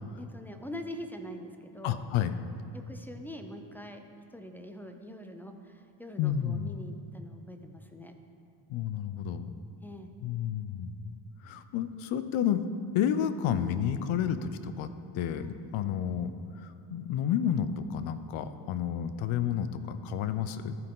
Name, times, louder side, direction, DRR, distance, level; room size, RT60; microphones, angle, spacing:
voice 1, 0.2-2.0 2.7-4.0 4.3-8.1 9.8-10.1 15.4-15.6, left 1 dB, 5° left, 5 dB, 0.3 m, -44 dB
voice 2, 1.8-2.3 6.2-6.8 8.7-9.5 10.2-11.0 11.4-12.6 12.9-14.9 15.1-20.8, left 9 dB, 75° left, 11 dB, 0.6 m, -30 dB
13.5 x 4.6 x 3.7 m, 2.5 s
cardioid pair, 110°, 49 cm